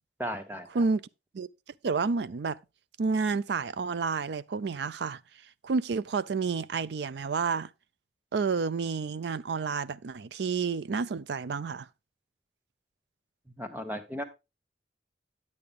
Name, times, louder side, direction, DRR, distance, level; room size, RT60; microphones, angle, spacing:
voice 1, 0.2-0.8 13.6-14.2, equal, 10° right, 1.2 m, -36 dB
voice 2, 1.8-2.6 3.0-5.2 5.6-7.7 8.3-11.9, right 4 dB, 75° right, 0.4 m, -30 dB
9.5 x 8.6 x 3.6 m
head